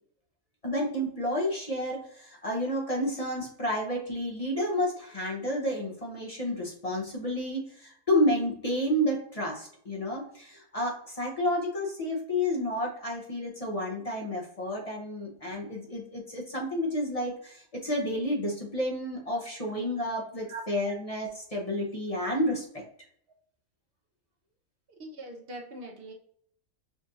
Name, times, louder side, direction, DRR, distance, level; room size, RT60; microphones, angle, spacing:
voice 1, 0.6-22.8, left 1 dB, 35° left, -2 dB, 0.7 m, -30 dB
voice 2, 25.0-26.1, right 2 dB, 50° right, 2 dB, 0.9 m, -41 dB
6.2 x 2.6 x 2.6 m, 0.64 s
omnidirectional pair, 1.5 m